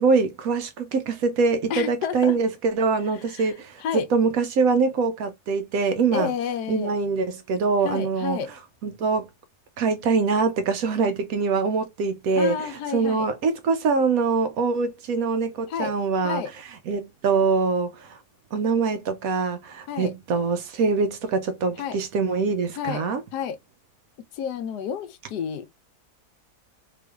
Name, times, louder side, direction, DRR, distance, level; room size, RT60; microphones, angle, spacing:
voice 1, 0.0-6.3 6.7-8.4 8.8-9.3 9.8-16.4 16.9-18.2 18.5-23.2, right 4 dB, 70° right, 0.9 m, -24 dB
voice 2, 1.7-2.4 3.3-3.5 3.8-4.1 6.1-7.0 7.8-8.5 12.4-13.3 15.7-15.9 16.2-16.5 19.9-20.1 21.8-22.0 22.7-23.1 23.3-23.6 24.3-25.7, left 7 dB, 80° left, 1.2 m, -30 dB
3.3 x 3.0 x 2.2 m
omnidirectional pair, 1.7 m